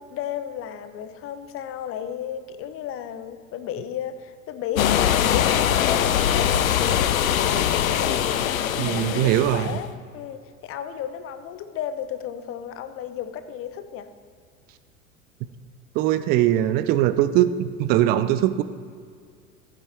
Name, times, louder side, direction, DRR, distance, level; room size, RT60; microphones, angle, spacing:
voice 1, 0.0-9.9 10.1-14.1, left 9 dB, 30° left, 10 dB, 0.8 m, -34 dB
sound 1, 4.7-9.8, left 10 dB, 75° left, 0.6 m, -22 dB
voice 2, 8.8-9.8 16.0-18.6, right 13 dB, 25° right, 12 dB, 0.3 m, -21 dB
14.5 x 8.1 x 3.4 m, 2.1 s
figure-of-eight pair, 80°, 42 cm